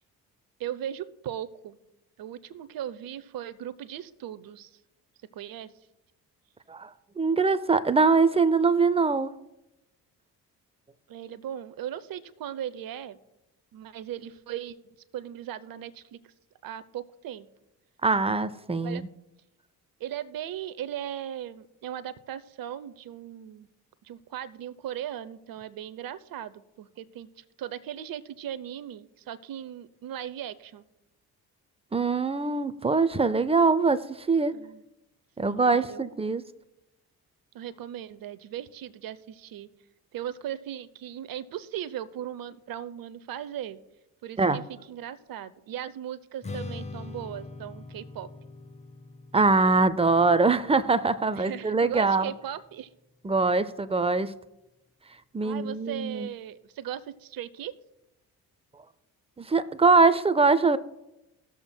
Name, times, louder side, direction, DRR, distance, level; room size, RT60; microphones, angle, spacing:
voice 1, 0.6-1.8 2.2-4.8 5.3-5.7 11.1-13.2 13.7-14.8 15.1-16.3 16.6-17.5 18.8-19.0 20.0-23.7 24.0-30.8 34.5-34.8 35.4-36.0 37.5-39.7 40.1-43.8 44.2-48.3 51.3-52.9 55.4-57.7, right 10 dB, 50° right, 15 dB, 0.7 m, -38 dB
voice 2, 7.2-9.3 18.0-19.1 31.9-34.5 35.4-36.4 44.4-44.6 49.3-52.3 53.2-54.3 55.3-56.3 59.4-60.8, right 4 dB, 15° right, 15 dB, 0.5 m, -23 dB
Strum, 46.4-52.7, left 3 dB, 15° left, 0.8 m, -43 dB
19.5 x 7.0 x 2.2 m, 0.93 s
hypercardioid pair, 45°, 46 cm